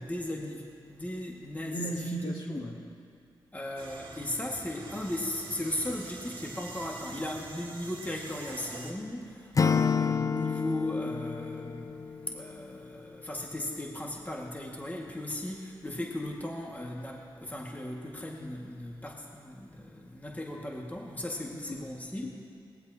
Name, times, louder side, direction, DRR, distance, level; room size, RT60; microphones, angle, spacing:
voice 1, 0.0-2.0 2.6-2.7 3.5-22.2, left 1 dB, 15° left, -1 dB, 1.9 m, -37 dB
voice 2, 1.6-2.8 21.5-21.9 22.2-22.3, right 1 dB, 60° left, -4 dB, 2.6 m, -36 dB
sound 1, 3.8-8.9, right 3 dB, 70° right, 2.1 m, -45 dB
Acoustic guitar / Strum, 9.5-12.6, left 6 dB, 40° left, 0.4 m, -29 dB
19.5 x 15.0 x 2.9 m, 2.3 s
cardioid pair, 50°, 9 cm